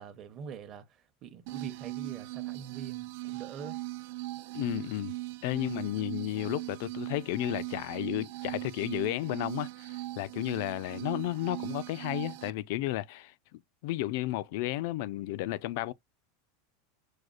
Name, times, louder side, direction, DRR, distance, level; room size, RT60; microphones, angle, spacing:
voice 1, 0.0-3.8 5.5-5.8, right 6 dB, 35° right, 0.7 m, -45 dB
sound 1, 1.5-12.5, right 20 dB, 60° right, 0.4 m, -39 dB
voice 2, 4.5-5.2 5.4-15.9, left 16 dB, 60° left, 0.3 m, -33 dB
6.3 x 2.3 x 2.4 m
supercardioid pair, 155°, 0 cm